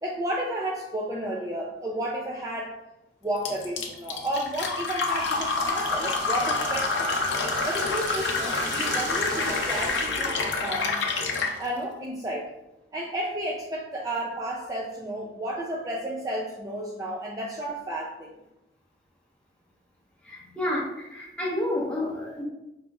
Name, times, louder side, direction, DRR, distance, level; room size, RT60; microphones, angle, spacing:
voice 1, 0.0-2.8 3.2-7.1 7.6-10.3 10.6-10.9 11.6-12.5 12.9-18.4, right 1 dB, 20° right, -3 dB, 0.4 m, -32 dB
Fill (with liquid), 3.4-11.6, left 3 dB, 90° left, 0.6 m, -27 dB
Wind, 5.1-10.1, right 2 dB, 85° right, 0.8 m, -39 dB
voice 2, 20.3-22.4, left 1 dB, 5° left, -5 dB, 0.8 m, -30 dB
5.0 x 2.9 x 2.3 m, 0.95 s
head